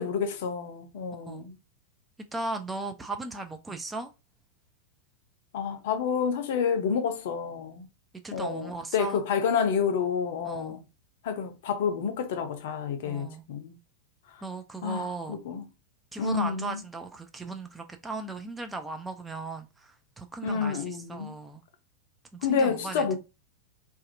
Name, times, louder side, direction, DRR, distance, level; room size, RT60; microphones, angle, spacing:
voice 1, 0.0-1.5 5.5-7.9 8.3-10.8 11.2-13.8 14.8-15.6 16.2-16.8 20.4-21.3 22.4-23.2, left 6 dB, 55° left, 0.5 m, -29 dB
voice 2, 2.3-4.1 8.2-9.2 10.4-10.8 13.0-13.4 14.4-15.4 16.1-21.6 22.3-23.2, right 3 dB, 10° right, 0.4 m, -37 dB
2.6 x 2.4 x 2.5 m
figure-of-eight pair, 90°, 0 cm